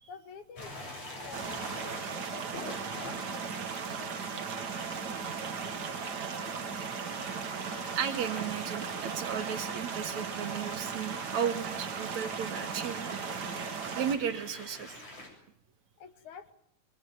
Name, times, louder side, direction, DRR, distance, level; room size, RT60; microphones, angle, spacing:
voice 1, 0.1-5.2 5.6-6.6 16.0-16.5, left 6 dB, 75° left, 9 dB, 3.5 m, -50 dB
sound 1, 0.6-15.3, left 1 dB, 55° left, 9.2 m, -46 dB
sound 2, 1.3-14.2, right 6 dB, 45° right, 1.6 m, -37 dB
voice 2, 8.0-13.2 14.0-15.0, right 8 dB, 65° right, 7 dB, 3.0 m, -35 dB
26.0 x 23.0 x 9.5 m, 0.70 s
omnidirectional pair, 3.5 m